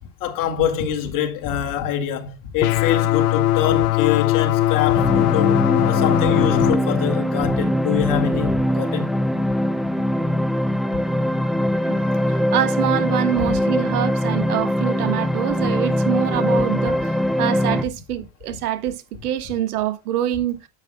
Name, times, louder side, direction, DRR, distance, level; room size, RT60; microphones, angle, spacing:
voice 1, 0.0-9.1 10.9-11.0 13.4-13.5, left 9 dB, 45° left, 2.4 m, -25 dB
sound 1, 2.6-6.7, left 16 dB, 80° left, 0.8 m, -19 dB
sound 2, 4.9-17.8, equal, ahead, 0.7 m, -22 dB
voice 2, 11.8-20.7, right 11 dB, 85° right, 1.6 m, -25 dB
10.5 x 8.1 x 2.3 m
supercardioid pair, 115°, 44 cm